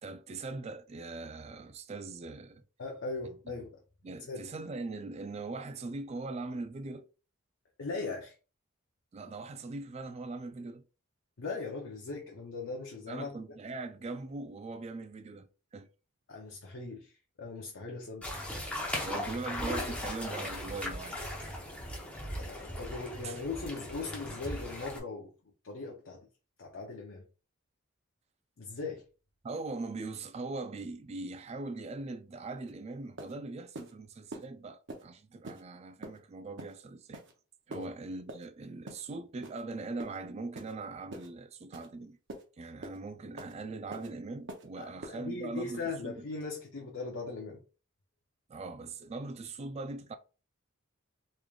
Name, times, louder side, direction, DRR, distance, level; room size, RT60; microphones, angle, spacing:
voice 1, 0.0-2.6 4.0-7.1 9.1-10.8 13.1-15.9 19.0-21.2 23.2-23.4 29.4-37.2 37.7-42.2 42.6-46.2 48.5-50.2, right 3 dB, 30° right, 0.3 m, -41 dB
voice 2, 2.8-3.8 4.3-4.5 7.8-8.3 11.4-13.3 16.3-18.3 22.3-25.3 25.6-26.2 26.6-27.2 28.6-29.0 37.7-37.9 44.8-47.6, left 3 dB, 65° left, 0.6 m, -39 dB
sound 1, 18.2-25.0, left 1 dB, 5° left, 0.7 m, -38 dB
sound 2, 32.7-32.8 33.2-33.3 33.7-33.9 34.3-34.4 34.9-35.0 35.4-35.6 36.0-36.2 36.6-36.7 37.1-37.3 37.7-37.9 38.3-38.5 38.9-39.0 39.4-39.6 40.0-40.2 40.5-40.7 41.1-41.3 41.7-41.9 42.3-42.4 42.8-43.0 43.4-43.5 43.9-44.1 44.5-44.7 45.0-45.1, right 2 dB, 55° right, 0.7 m, -44 dB
3.6 x 3.2 x 2.3 m
head